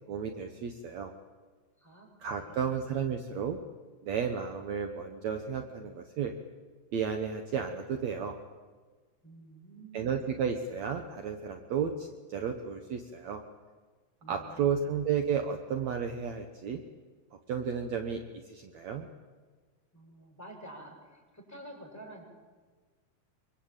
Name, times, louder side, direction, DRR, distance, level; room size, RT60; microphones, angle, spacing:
voice 1, 0.1-1.1 2.2-3.6 4.0-6.3 6.9-8.4 9.9-13.4 14.3-16.8 17.5-19.1, right 7 dB, 60° right, 5 dB, 2.4 m, -33 dB
voice 2, 1.8-2.8 9.2-10.2 14.2-14.8 19.9-22.2, right 1 dB, 5° left, 1 dB, 6.7 m, -50 dB
25.0 x 24.5 x 9.1 m, 1.4 s
omnidirectional pair, 3.8 m